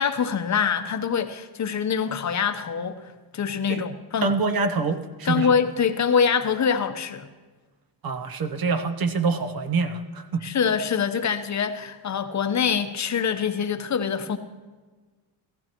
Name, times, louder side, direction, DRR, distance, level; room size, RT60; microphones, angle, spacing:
voice 1, 0.0-3.0 3.3-4.3 5.2-7.3 10.4-14.4, left 7 dB, 35° left, 9 dB, 0.9 m, -24 dB
voice 2, 4.2-5.6 8.0-10.4, right 4 dB, 45° right, 9 dB, 0.9 m, -25 dB
15.0 x 15.0 x 3.0 m, 1.3 s
cardioid pair, 90°, 49 cm